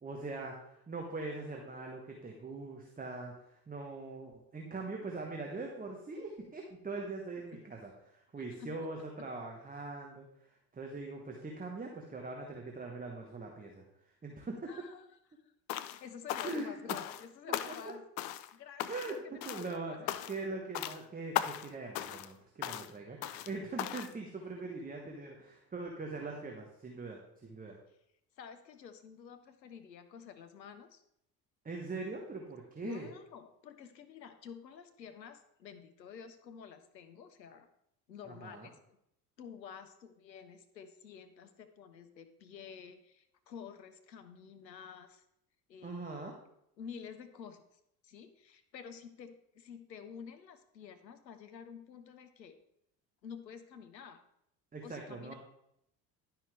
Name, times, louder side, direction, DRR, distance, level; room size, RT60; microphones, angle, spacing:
voice 1, 0.0-13.8 14.2-14.6 16.4-17.0 17.7-17.8 18.9-19.2 19.4-20.0 20.3-27.8 31.6-33.1 38.2-38.7 45.8-46.3 54.7-55.3, right 3 dB, 15° right, 1 dB, 1.2 m, -42 dB
voice 2, 8.4-8.8 14.7-15.2 15.4-15.5 15.8-18.0 18.5-20.2 24.6-24.7 28.4-31.0 32.8-37.7 38.1-38.8 39.4-45.2 45.7-46.3 46.8-47.6 48.0-52.6 53.2-54.2 54.8-55.3, left 7 dB, 85° left, 9 dB, 0.8 m, -50 dB
sound 1, 15.7-16.0 16.3-17.2 17.5-17.9 18.2-18.5 18.8-19.2 19.4-19.7 20.1-20.5 20.7-21.0 21.3-21.7 21.9-22.3 22.6-22.9 23.2-23.5 23.8-24.1, left 12 dB, 45° left, 0.6 m, -37 dB
11.0 x 5.7 x 3.3 m, 0.77 s
figure-of-eight pair, 65°, 50 cm